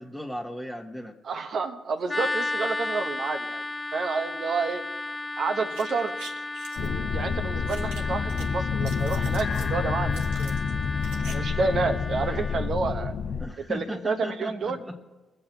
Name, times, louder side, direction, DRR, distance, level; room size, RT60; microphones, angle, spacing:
voice 1, 0.0-1.2 13.4-15.0, left 1 dB, ahead, -1 dB, 1.6 m, -36 dB
voice 2, 1.2-3.6 3.9-4.8 5.4-6.1 6.8-10.6 11.3-13.1 13.6-14.8, right 4 dB, 60° right, 7 dB, 1.2 m, -29 dB
sound 1, 2.1-12.7, left 2 dB, 20° left, 1.3 m, -34 dB
sound 2, 5.6-6.9 7.7-8.4 8.7-9.7 10.1-11.3 11.6-11.7, right 4 dB, 80° right, 1.3 m, -44 dB
sound 3, 6.8-13.5, left 6 dB, 60° left, 0.8 m, -28 dB
22.5 x 7.9 x 4.6 m, 1.2 s
hypercardioid pair, 45°, 0 cm